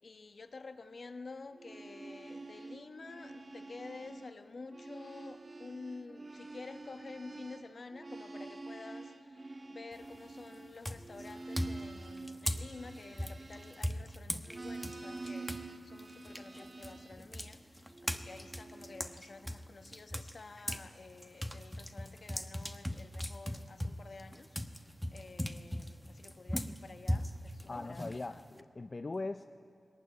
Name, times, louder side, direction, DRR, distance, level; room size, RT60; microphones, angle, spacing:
voice 1, 0.0-24.8 25.1-28.4, left 3 dB, 60° left, 8 dB, 1.2 m, -50 dB
sound 1, 1.5-4.3 4.6-14.1 14.5-17.2 17.9-19.2, right 3 dB, 45° right, 1.5 m, -47 dB
sound 2, 9.9-10.3 10.8-15.7 16.0-20.9 21.2-28.6, equal, ahead, 1.0 m, -39 dB
voice 2, 27.7-29.5, left 3 dB, 40° left, 7 dB, 0.6 m, -40 dB
20.5 x 19.0 x 9.5 m, 2.2 s
wide cardioid pair, 85°, 0 cm